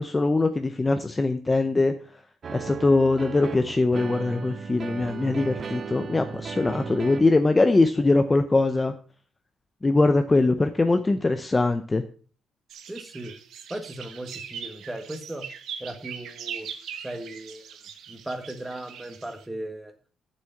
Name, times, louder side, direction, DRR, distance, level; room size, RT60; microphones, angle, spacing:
voice 1, 0.0-1.9 2.5-8.9 9.8-12.0, left 2 dB, 15° left, 8 dB, 0.6 m, -22 dB
sound 1, 2.4-7.4, right 6 dB, 35° right, 0.6 m, -36 dB
sound 2, 12.7-19.5, right 8 dB, 70° right, 1.2 m, -41 dB
voice 2, 12.9-13.4 13.7-15.4 15.8-16.7 17.0-17.8 18.1-19.9, right 1 dB, 10° right, 7 dB, 1.6 m, -37 dB
9.3 x 7.2 x 5.7 m, 0.41 s
cardioid pair, 150°, 0 cm